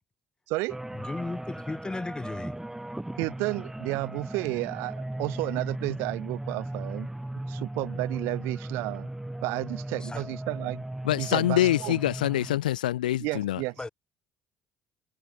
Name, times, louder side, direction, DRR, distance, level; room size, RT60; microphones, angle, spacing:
sound 1, 0.7-12.6, right 1 dB, 10° right, 4.5 m, -37 dB
voice 1, 0.9-2.6 10.0-10.2 13.8-13.9, left 2 dB, 20° left, 4.1 m, -35 dB
voice 2, 3.2-7.1 7.5-9.1 9.4-10.8 11.2-12.0 13.2-13.9, right 24 dB, 65° right, 0.5 m, -32 dB
voice 3, 11.0-13.6, left 13 dB, 80° left, 0.7 m, -25 dB
figure-of-eight pair, 55°, 4 cm